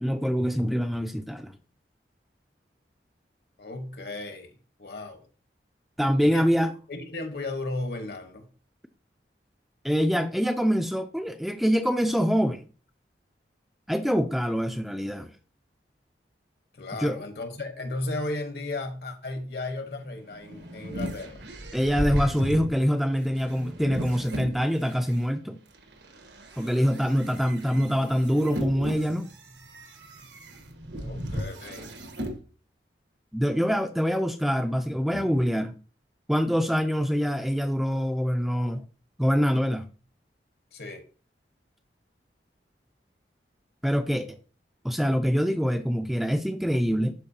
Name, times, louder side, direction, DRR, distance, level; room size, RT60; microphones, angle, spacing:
voice 1, 0.0-1.5 6.0-6.7 9.8-12.6 13.9-15.3 17.0-17.2 21.7-25.6 26.6-29.3 33.3-35.7 36.3-38.8 39.2-39.8 43.8-44.3 44.8-47.1, equal, ahead, 0.3 m, -25 dB
voice 2, 3.6-4.5 4.8-5.2 6.2-6.5 6.9-8.4 16.7-21.4 30.9-31.9 35.1-35.3 40.7-41.0, left 2 dB, 65° left, 1.3 m, -35 dB
sound 1, 20.1-25.2 25.7-32.4, equal, 90° right, 1.4 m, -36 dB
12.0 x 4.6 x 2.8 m
head